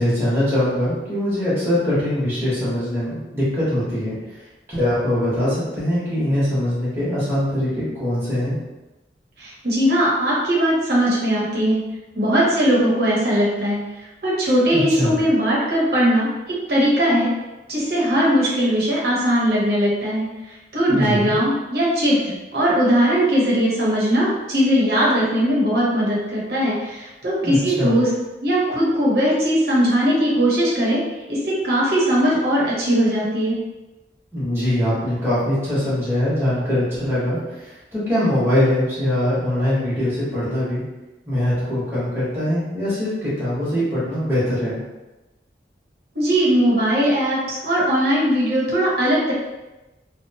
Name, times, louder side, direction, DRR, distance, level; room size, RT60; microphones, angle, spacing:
voice 1, 0.0-4.1 4.7-8.6 14.7-15.2 20.9-21.3 27.4-27.9 34.3-40.8 41.3-44.8, left 1 dB, 15° right, -11 dB, 0.9 m, -22 dB
voice 2, 9.4-11.8 12.1-13.8 14.2-16.3 16.7-17.3 17.7-20.3 20.7-28.1 28.4-31.0 31.3-33.6 46.1-49.3, equal, 60° right, -6 dB, 0.8 m, -19 dB
2.7 x 2.1 x 2.7 m, 1.1 s
head